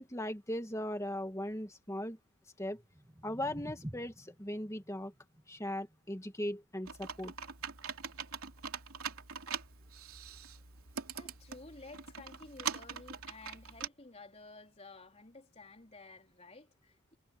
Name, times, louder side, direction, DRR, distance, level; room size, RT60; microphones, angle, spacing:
voice 1, 0.0-2.2 2.6-2.8 3.2-5.1 5.5-7.3, left 1 dB, 15° left, 2.0 m, -38 dB
sound 1, 2.7-8.8, equal, 15° right, 1.4 m, -52 dB
Computer keyboard, 6.9-13.9, right 7 dB, 85° right, 3.0 m, -43 dB
voice 2, 11.1-17.2, left 3 dB, 30° left, 4.1 m, -53 dB
head